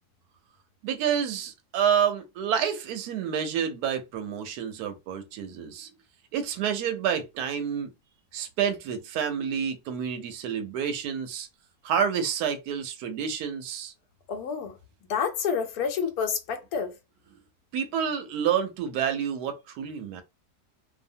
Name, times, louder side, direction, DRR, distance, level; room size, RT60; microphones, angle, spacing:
voice 1, 0.8-5.9 6.3-7.9 8.3-11.5 11.8-13.9 17.7-20.2, right 8 dB, 80° right, 1.1 m, -29 dB
voice 2, 14.3-14.8 15.1-16.9, left 6 dB, 70° left, 1.1 m, -29 dB
2.7 x 2.3 x 2.6 m
omnidirectional pair, 1.7 m